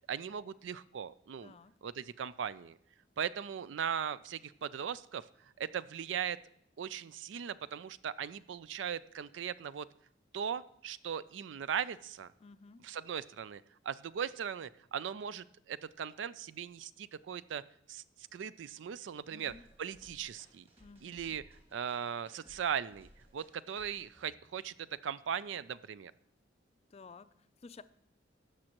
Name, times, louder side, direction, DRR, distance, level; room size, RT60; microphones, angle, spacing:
voice 1, 0.1-1.5 1.8-2.8 3.2-5.2 5.6-6.4 6.8-9.9 10.3-12.3 12.8-17.6 17.9-19.5 19.8-20.7 21.0-21.4 21.7-26.1, right 8 dB, 85° right, 17 dB, 0.4 m, -39 dB
voice 2, 1.4-1.8 12.4-12.9 19.3-19.6 20.8-21.4 26.9-27.8, left 4 dB, 35° left, 13 dB, 0.4 m, -54 dB
sound 1, 19.4-24.9, equal, 35° right, 2.2 m, -62 dB
18.0 x 6.2 x 3.0 m, 0.71 s
head